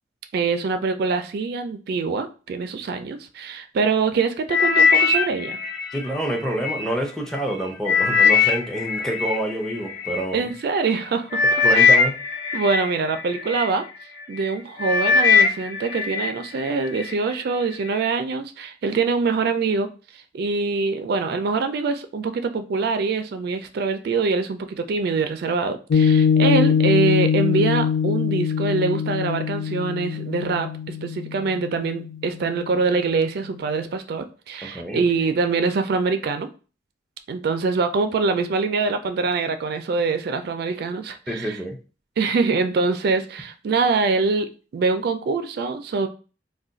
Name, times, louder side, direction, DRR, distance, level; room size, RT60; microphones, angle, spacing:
voice 1, 0.3-5.6 10.3-11.4 11.7-11.9 12.5-13.8 14.3-36.5 37.3-41.6 42.2-46.1, right 4 dB, 60° right, 0.3 m, -24 dB
sound 1, 4.5-6.8 7.4-10.2 10.9-11.0 11.3-13.7 14.2-14.5 14.8-16.3 16.7-17.1 17.7-17.8, left 5 dB, 50° left, 0.8 m, -20 dB
voice 2, 5.9-10.5 11.6-12.2 34.6-35.0 41.3-41.8, right 1 dB, 5° left, 0.5 m, -27 dB
Piano, 25.9-32.6, left 7 dB, 90° left, 0.3 m, -22 dB
2.4 x 2.2 x 3.8 m
head